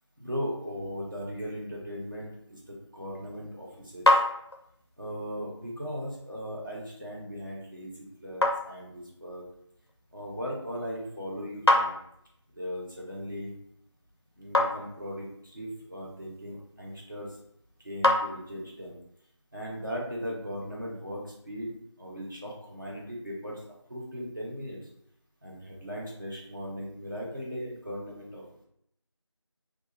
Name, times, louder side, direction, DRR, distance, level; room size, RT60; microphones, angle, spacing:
voice 1, 0.2-4.2 5.0-9.4 10.1-11.9 12.5-13.5 14.4-17.4 17.8-19.0 19.5-21.7 22.0-23.6 23.9-24.8 25.4-28.4, equal, 40° right, -4 dB, 0.7 m, -38 dB
sound 1, 3.1-18.9, left 1 dB, 55° left, 0.4 m, -32 dB
2.3 x 2.2 x 2.8 m, 0.72 s
figure-of-eight pair, 180°, 16 cm